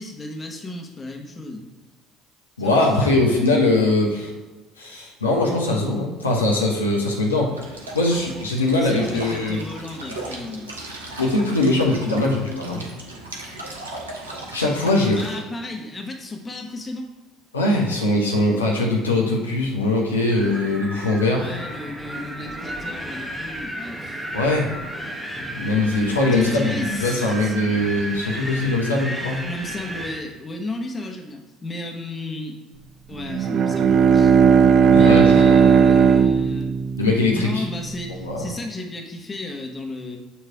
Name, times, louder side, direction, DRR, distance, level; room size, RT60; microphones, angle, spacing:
voice 1, 0.0-1.7 2.6-3.6 8.8-11.1 14.4-14.5 15.1-17.1 21.4-24.4 26.3-27.6 29.4-32.6 33.1-34.4 34.9-36.7 37.3-40.2, left 2 dB, 25° left, 2 dB, 1.2 m, -34 dB
voice 2, 2.6-4.3 4.8-9.6 11.2-12.8 14.5-15.2 17.5-21.6 24.3-24.7 25.4-29.5 34.9-35.7 37.0-37.6 38.2-38.4, left 2 dB, 90° left, -1 dB, 0.9 m, -21 dB
sound 1, 7.6-15.4, right 2 dB, 85° right, 0.9 m, -37 dB
Wind, 20.3-30.2, right 1 dB, 10° right, 1.0 m, -33 dB
Bowed string instrument, 33.3-37.9, right 6 dB, 50° right, 0.4 m, -16 dB
7.0 x 3.2 x 4.8 m, 1.2 s
figure-of-eight pair, 60°, 0 cm